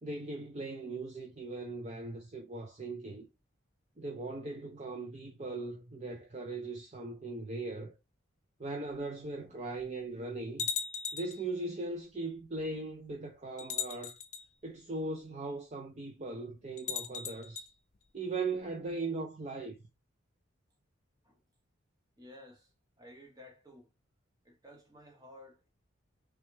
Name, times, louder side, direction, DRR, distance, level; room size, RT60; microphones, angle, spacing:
voice 1, 0.0-3.3 4.0-8.0 8.6-10.7 11.1-14.2 14.6-17.7 18.1-19.8, right 3 dB, 35° right, 0.5 m, -39 dB
sound 1, 8.9-9.0 9.8-9.9 10.6-11.4 12.6-12.7 13.6-14.5 16.8-17.7, left 7 dB, 35° left, 0.4 m, -37 dB
voice 2, 22.2-23.9 24.4-25.7, left 1 dB, 20° right, 1.0 m, -54 dB
3.3 x 3.2 x 3.1 m
head